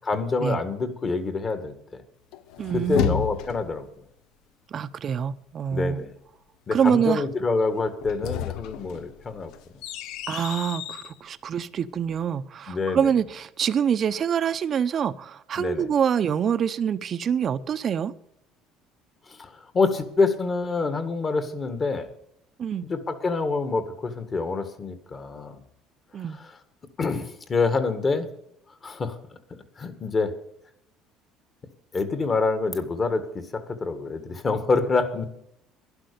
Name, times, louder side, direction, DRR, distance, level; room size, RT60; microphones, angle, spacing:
voice 1, 0.0-2.0 2.7-3.9 5.7-6.1 6.7-9.5 12.7-13.1 15.6-15.9 19.3-22.1 22.9-25.6 26.4-26.5 27.0-28.3 28.8-29.2 29.5-30.3 31.9-35.3, left 4 dB, 30° left, 1.8 m, -26 dB
sound 1, 2.3-3.8 7.9-11.1, left 10 dB, 70° left, 0.8 m, -32 dB
voice 2, 2.6-3.2 4.7-6.0 6.7-7.2 10.3-18.1 22.6-22.9 26.1-26.4, right 8 dB, 40° right, 0.8 m, -25 dB
11.5 x 11.0 x 6.8 m
cardioid pair, 110°, 0 cm